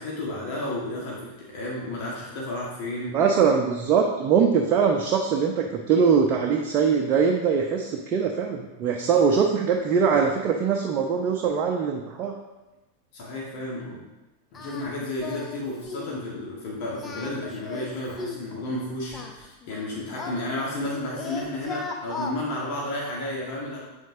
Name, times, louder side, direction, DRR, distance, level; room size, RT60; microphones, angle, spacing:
voice 1, 0.0-3.2 13.1-14.1 14.5-23.8, left 1 dB, 45° left, -5 dB, 1.8 m, -32 dB
voice 2, 3.1-12.4, right 6 dB, 35° right, 1 dB, 0.7 m, -22 dB
Singing, 14.5-14.9 15.2-15.6 15.9-16.2 16.9-18.5 19.1-20.9 21.2-22.4, left 4 dB, 20° left, 0.9 m, -36 dB
7.7 x 7.5 x 2.8 m, 1.0 s
figure-of-eight pair, 90°, 0 cm